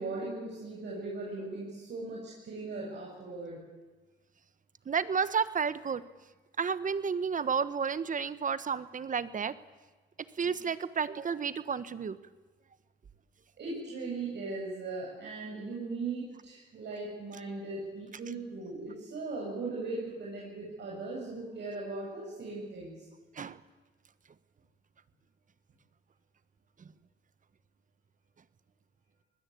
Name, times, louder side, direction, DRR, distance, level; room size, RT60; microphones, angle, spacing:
voice 1, 0.0-3.6 13.6-22.9, right 3 dB, 60° right, -3 dB, 7.5 m, -38 dB
voice 2, 4.9-6.0 6.6-9.5 10.4-12.2 23.3-23.6, right 6 dB, 40° right, 14 dB, 1.4 m, -31 dB
24.5 x 20.0 x 8.7 m, 1.3 s
cardioid pair, 90°, 20 cm